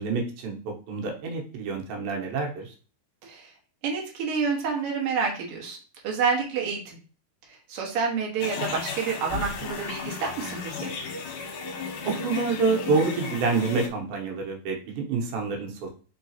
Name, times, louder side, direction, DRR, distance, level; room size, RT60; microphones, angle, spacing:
voice 1, 0.0-2.7 12.0-15.9, right 4 dB, 80° right, 1 dB, 2.7 m, -27 dB
voice 2, 3.2-3.5 3.8-5.8 6.0-7.0 7.5-10.9, right 5 dB, 55° right, -2 dB, 1.7 m, -28 dB
sound 1, 8.4-13.9, left 5 dB, 75° left, 1.9 m, -34 dB
5.0 x 3.8 x 2.8 m, 0.38 s
omnidirectional pair, 4.3 m